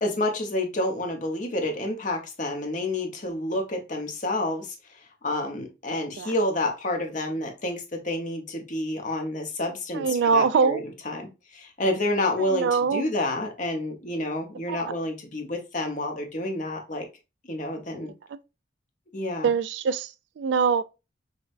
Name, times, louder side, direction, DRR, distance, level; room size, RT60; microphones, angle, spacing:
voice 1, 0.0-4.7 5.2-10.8 11.1-17.0 17.5-18.1 19.1-19.5, left 1 dB, 45° left, 0.8 m, -29 dB
voice 2, 9.9-10.8 12.4-13.0 14.7-14.8 18.3-18.4 19.4-20.8, right 5 dB, 75° right, 0.3 m, -23 dB
5.1 x 2.1 x 2.5 m
head